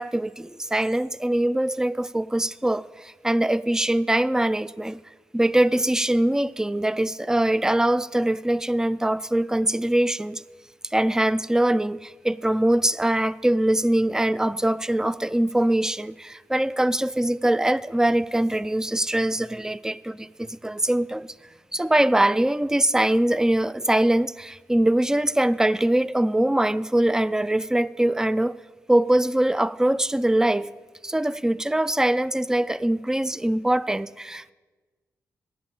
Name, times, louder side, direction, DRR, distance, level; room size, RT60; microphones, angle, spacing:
voice 1, 0.0-5.0 5.3-10.4 10.9-21.3 21.7-28.5 28.9-30.7 31.0-34.5, right 1 dB, 10° right, 0.4 m, -23 dB
8.8 x 7.0 x 8.7 m
cardioid pair, 55°, 6 cm